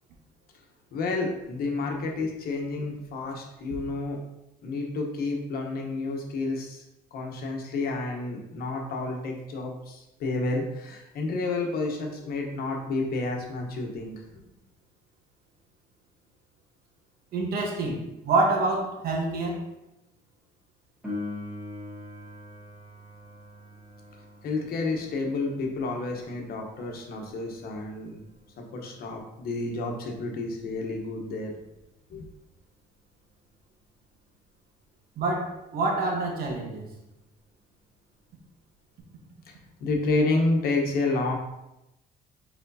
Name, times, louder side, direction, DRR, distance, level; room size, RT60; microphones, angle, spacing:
voice 1, 0.9-4.2 4.6-6.8 7.1-14.1 24.4-28.2 28.7-31.5 32.1-32.2 39.8-41.3, left 3 dB, 65° left, 1 dB, 1.0 m, -30 dB
voice 2, 17.3-19.6 35.2-36.9, right 2 dB, 65° right, 1 dB, 1.2 m, -27 dB
Piano, 21.0-31.4 39.0-39.1, left 2 dB, 10° right, 1.6 m, -44 dB
4.6 x 4.3 x 2.7 m, 0.91 s
cardioid pair, 110°, 17 cm